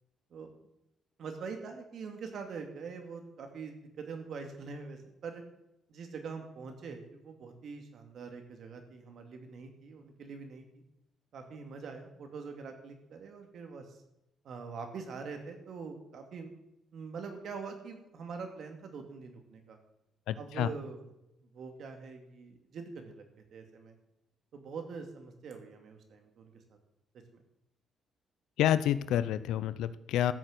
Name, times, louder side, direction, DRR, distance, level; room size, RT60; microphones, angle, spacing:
voice 1, 1.2-5.4 5.9-10.8 11.3-14.0 14.4-16.5 16.9-19.8 20.4-21.0 21.5-23.2 23.5-23.9 24.5-26.5 27.3-27.4, right 5 dB, 65° right, 5 dB, 2.5 m, -44 dB
voice 2, 20.3-20.7 28.6-30.3, left 11 dB, 85° left, 14 dB, 0.6 m, -28 dB
13.5 x 6.6 x 8.1 m, 0.89 s
cardioid pair, 90°, 0 cm